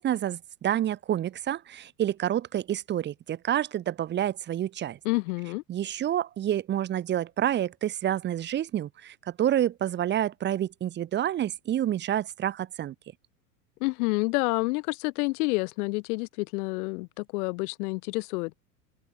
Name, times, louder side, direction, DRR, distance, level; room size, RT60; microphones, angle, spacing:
voice 1, 0.0-5.0 5.7-12.9, right 11 dB, 25° right, 0.6 m, -28 dB
voice 2, 5.0-5.6 13.8-18.5, left 26 dB, 65° left, 1.6 m, -28 dB
hypercardioid pair, 100°, 47 cm